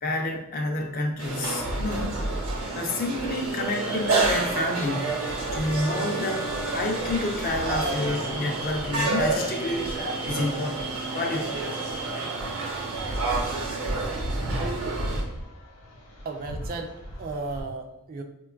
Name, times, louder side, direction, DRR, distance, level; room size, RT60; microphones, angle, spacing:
voice 1, 0.0-2.2 2.7-5.1 5.5-9.9 10.2-11.6, left 2 dB, 40° left, 2 dB, 0.5 m, -29 dB
sound 1, 1.2-17.6, equal, 75° left, 0.8 m, -37 dB
sound 2, 1.2-15.2, right 3 dB, 80° right, 0.8 m, -29 dB
voice 2, 16.2-18.2, right 3 dB, 40° right, 5 dB, 0.3 m, -35 dB
3.6 x 2.3 x 2.3 m, 0.92 s
head